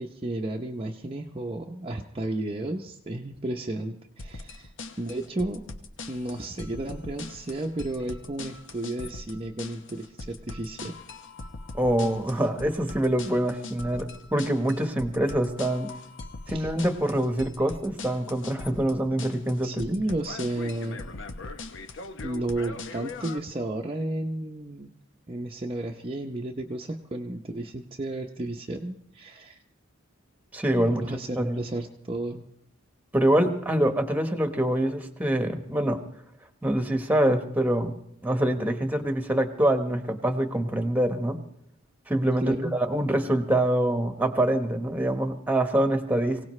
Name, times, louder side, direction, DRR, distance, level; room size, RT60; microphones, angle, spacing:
voice 1, 0.0-4.7 5.0-5.6 6.1-11.0 16.5-16.7 19.6-21.0 22.2-24.9 25.3-29.6 30.8-32.4 42.4-42.7, right 1 dB, 25° right, 1 dB, 0.7 m, -33 dB
sound 1, 4.2-23.4, left 3 dB, 60° left, 1.0 m, -41 dB
voice 2, 11.7-15.9 16.5-19.8 30.5-31.1 31.4-31.6 33.1-36.0 36.6-37.9 38.2-41.4 42.1-46.5, right 1 dB, 10° right, 6 dB, 1.2 m, -25 dB
24.0 x 17.5 x 3.2 m, 0.73 s
head